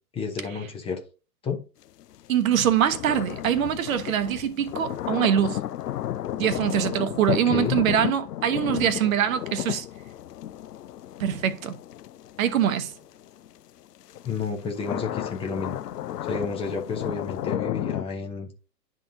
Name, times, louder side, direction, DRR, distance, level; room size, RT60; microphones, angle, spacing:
voice 1, 0.1-1.0 1.4-1.6 7.3-7.8 14.2-15.8 16.2-18.5, left 5 dB, 10° left, 0.6 m, -31 dB
sound 1, 2.0-13.5 14.0-18.0, left 12 dB, 75° left, 0.6 m, -33 dB
voice 2, 2.3-5.6 6.4-9.9 11.2-11.8 12.4-12.9, right 9 dB, 55° right, 0.8 m, -23 dB
11.0 x 3.7 x 2.6 m
figure-of-eight pair, 110°, 49 cm